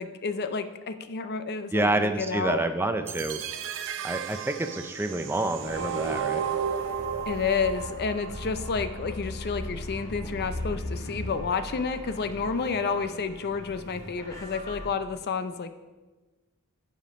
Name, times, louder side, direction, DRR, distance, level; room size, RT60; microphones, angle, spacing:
voice 1, 0.0-2.6 7.3-15.7, left 5 dB, 45° left, 10 dB, 0.5 m, -30 dB
voice 2, 1.7-3.4 4.0-6.4, right 2 dB, 10° right, 7 dB, 0.4 m, -28 dB
sound 1, 3.1-9.1, right 7 dB, 60° right, 0.6 m, -34 dB
sound 2, 5.6-14.9, equal, 15° left, 1.9 m, -44 dB
sound 3, 6.4-11.4, left 1 dB, 75° left, 1.9 m, -37 dB
9.9 x 5.2 x 5.1 m, 1.2 s
head